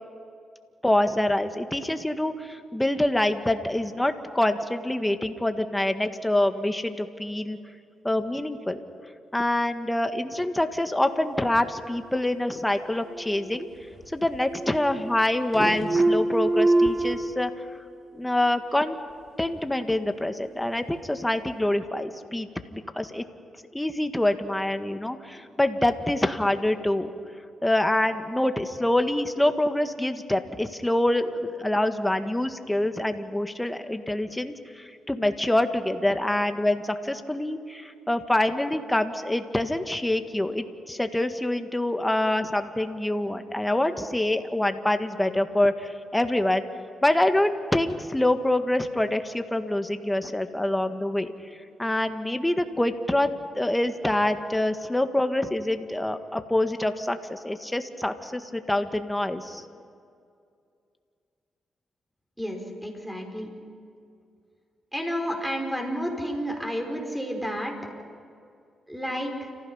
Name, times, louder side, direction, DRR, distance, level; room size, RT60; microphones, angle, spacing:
voice 1, 0.8-7.6 8.0-8.8 9.3-13.7 14.1-17.5 18.1-19.0 19.4-23.2 23.7-27.1 27.6-46.6 47.0-51.3 51.8-53.3 53.6-59.6, left 1 dB, 10° left, 7 dB, 1.7 m, -26 dB
sound 1, 13.1-14.0 14.3-15.3 15.5-17.1, right 2 dB, 50° right, 3.4 m, -24 dB
voice 2, 62.4-63.5 64.9-67.7 68.9-69.5, equal, 5° right, 2 dB, 5.2 m, -31 dB
30.0 x 15.5 x 5.7 m, 2.4 s
supercardioid pair, 55°, 0 cm